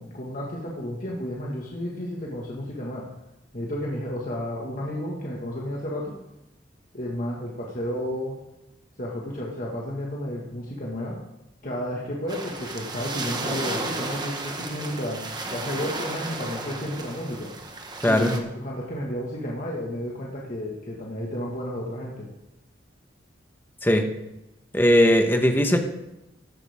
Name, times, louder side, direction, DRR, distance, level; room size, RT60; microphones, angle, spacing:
voice 1, 0.0-3.1 3.5-6.1 6.9-8.4 9.0-11.2 11.6-15.3 15.5-17.5 18.0-22.3, equal, 45° left, -3 dB, 1.8 m, -32 dB
sound 1, 12.3-18.4, right 2 dB, 25° right, 1.4 m, -33 dB
voice 2, 18.0-18.4 23.8-24.1 24.7-25.8, equal, 10° left, 5 dB, 1.2 m, -19 dB
14.5 x 11.0 x 3.6 m, 0.93 s
head